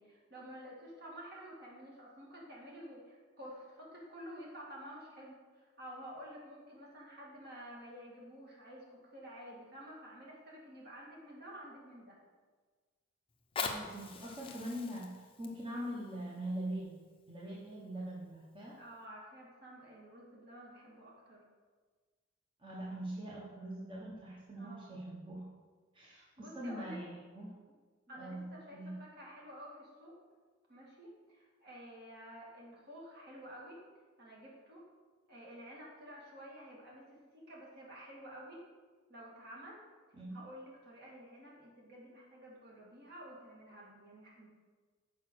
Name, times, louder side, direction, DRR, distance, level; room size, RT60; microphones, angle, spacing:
voice 1, 0.0-12.2 18.8-21.4 24.5-25.0 26.1-27.0 28.1-30.2 30.7-33.8 34.2-34.8 35.3-38.6 39.1-39.8 40.3-44.5, equal, 50° right, -4 dB, 2.2 m, -51 dB
Fire, 13.3-18.3 18.9-19.0, left 4 dB, 25° left, 0.7 m, -44 dB
voice 2, 13.6-17.0 17.3-18.8 22.6-25.5 25.9-27.5 28.1-28.9 40.1-40.4, right 1 dB, 25° right, -6 dB, 1.1 m, -43 dB
6.6 x 5.0 x 6.3 m, 1.4 s
head